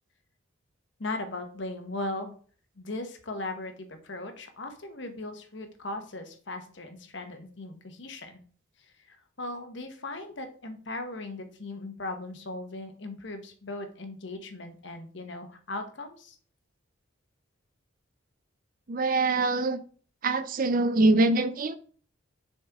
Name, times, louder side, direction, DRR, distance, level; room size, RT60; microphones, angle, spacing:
voice 1, 1.0-2.3 2.8-8.4 9.1-16.4, left 2 dB, 65° left, 6 dB, 1.1 m, -38 dB
voice 2, 18.9-19.8 20.2-21.8, right 2 dB, 45° right, 12 dB, 0.5 m, -24 dB
6.7 x 4.3 x 3.5 m, 0.43 s
head